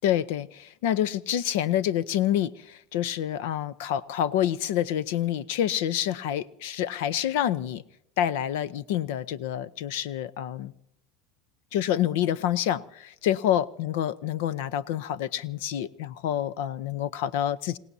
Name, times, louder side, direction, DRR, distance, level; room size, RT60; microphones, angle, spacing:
voice 1, 0.0-7.8 8.2-10.7 11.7-17.8, left 11 dB, 75° left, 0.8 m, -27 dB
28.0 x 17.5 x 2.8 m
supercardioid pair, 140°, 0 cm